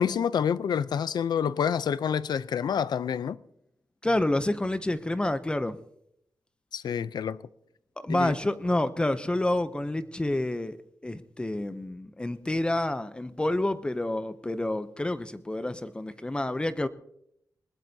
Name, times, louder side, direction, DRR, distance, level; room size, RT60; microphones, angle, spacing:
voice 1, 0.0-3.4 6.7-7.4 8.1-8.3, left 7 dB, 85° left, 0.4 m, -27 dB
voice 2, 4.0-5.8 8.0-10.8 11.0-16.9, left 1 dB, 15° left, 0.5 m, -28 dB
20.5 x 20.5 x 2.7 m
wide cardioid pair, 170°, 7 cm